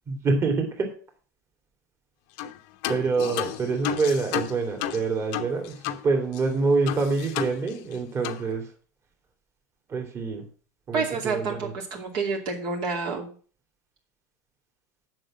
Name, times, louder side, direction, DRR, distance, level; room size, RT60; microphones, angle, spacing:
voice 1, 0.1-0.9 2.9-8.7 9.9-10.4 10.9-11.7, right 4 dB, 25° right, 2 dB, 2.8 m, -26 dB
sound 1, 2.4-2.6 2.8-6.0 6.3-6.4 6.9-8.0 8.2-8.4, left 10 dB, 60° left, 1.0 m, -32 dB
voice 2, 10.9-13.3, right 4 dB, 50° right, 1 dB, 2.7 m, -29 dB
7.7 x 6.1 x 7.6 m, 0.41 s
hypercardioid pair, 110°, 10 cm